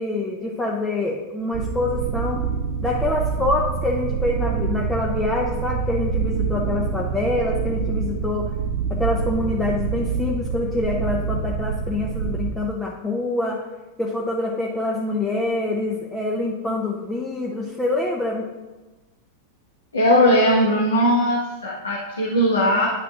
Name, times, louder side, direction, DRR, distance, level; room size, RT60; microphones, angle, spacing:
voice 1, 0.0-2.4 2.8-8.5 8.9-13.7 14.0-18.4, left 2 dB, 10° left, -2 dB, 0.7 m, -25 dB
sound 1, 1.5-12.5, right 6 dB, 50° right, 0.8 m, -26 dB
voice 2, 19.9-22.9, equal, 75° left, -5 dB, 1.2 m, -19 dB
10.5 x 5.8 x 2.5 m, 1.2 s
figure-of-eight pair, 90°, 0 cm